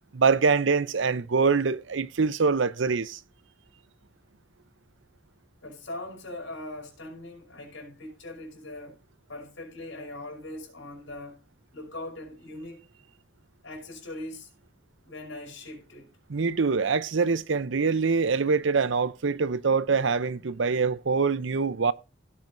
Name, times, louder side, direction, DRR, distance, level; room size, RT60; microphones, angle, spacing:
voice 1, 0.1-3.2 16.3-21.9, right 5 dB, 65° right, 0.6 m, -24 dB
voice 2, 5.6-9.0 9.3-11.4 11.7-12.9 13.6-14.5 15.0-16.1, left 1 dB, 75° left, 5.3 m, -40 dB
17.5 x 7.5 x 2.6 m
head